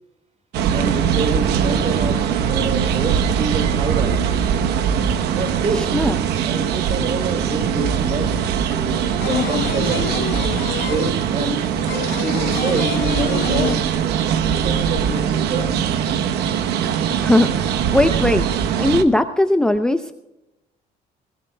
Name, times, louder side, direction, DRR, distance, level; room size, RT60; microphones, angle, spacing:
sound 1, 0.5-19.0, right 8 dB, 80° right, 1.0 m, -21 dB
voice 1, 0.7-4.5 5.3-5.9 6.5-8.3 8.6-10.2 10.8-11.6 12.1-13.9 14.6-15.8, right 3 dB, 40° right, 5 dB, 3.7 m, -27 dB
voice 2, 5.7-6.2 16.7-16.8 17.2-18.5 18.8-20.1, left 1 dB, 5° left, 7 dB, 0.6 m, -19 dB
sound 2, 7.5-7.6 7.8-14.4 14.7-14.8 15.1-15.9, left 11 dB, 70° left, 0.9 m, -28 dB
21.5 x 17.0 x 2.3 m, 0.92 s
cardioid pair, 110°, 17 cm